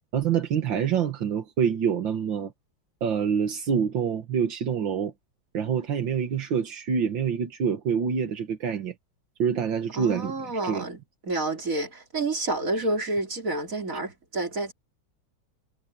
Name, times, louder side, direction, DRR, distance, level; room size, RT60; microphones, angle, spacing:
voice 1, 0.1-2.5 3.0-5.1 5.5-8.9 9.4-10.9, right 7 dB, 75° right, 2.2 m, -26 dB
voice 2, 9.9-14.7, right 2 dB, 45° right, 4.1 m, -29 dB
omnidirectional pair, 2.1 m